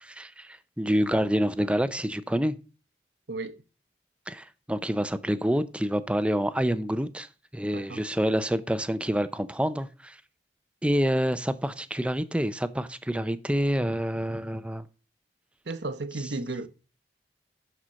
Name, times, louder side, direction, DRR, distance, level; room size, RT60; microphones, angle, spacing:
voice 1, 0.0-2.6 4.3-7.3 7.5-10.2 10.8-14.9, equal, 5° right, 0.5 m, -27 dB
voice 2, 7.6-8.0 15.7-16.7, right 2 dB, 75° right, 1.0 m, -34 dB
11.5 x 4.4 x 6.3 m
head